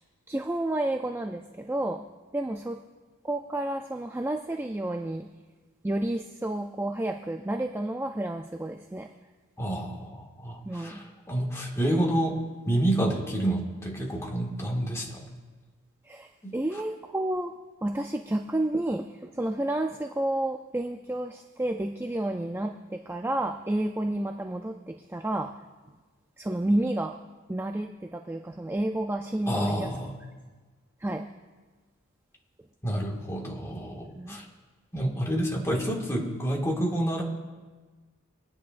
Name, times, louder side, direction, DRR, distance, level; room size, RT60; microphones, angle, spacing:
voice 1, 0.3-2.1 2.3-2.8 3.2-5.3 5.8-9.1 10.7-11.0 16.0-17.5 17.8-25.6 26.4-27.2 27.5-29.9 31.0-31.3 34.2-34.4, right 1 dB, 10° right, 4 dB, 0.4 m, -30 dB
voice 2, 9.6-12.4 12.7-15.2 16.4-16.5 29.5-30.2 32.8-34.4 34.9-37.2, right 1 dB, 15° left, -1 dB, 1.9 m, -29 dB
24.5 x 9.8 x 2.5 m, 1.4 s
head